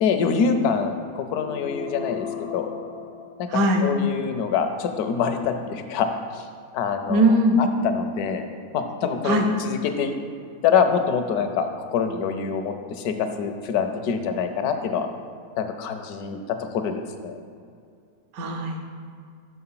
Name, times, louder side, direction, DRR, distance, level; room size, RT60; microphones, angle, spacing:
voice 1, 0.0-2.7 3.4-6.5 6.7-8.5 8.7-10.1 10.6-15.1 15.6-17.4, left 6 dB, 75° left, 7 dB, 1.1 m, -25 dB
sound 1, 1.4-4.0, left 8 dB, 55° left, 0.7 m, -36 dB
voice 2, 3.5-3.9 7.1-7.6 9.2-9.5 18.3-19.0, right 1 dB, 70° right, 3 dB, 1.2 m, -20 dB
6.3 x 5.7 x 5.6 m, 2.3 s
omnidirectional pair, 1.7 m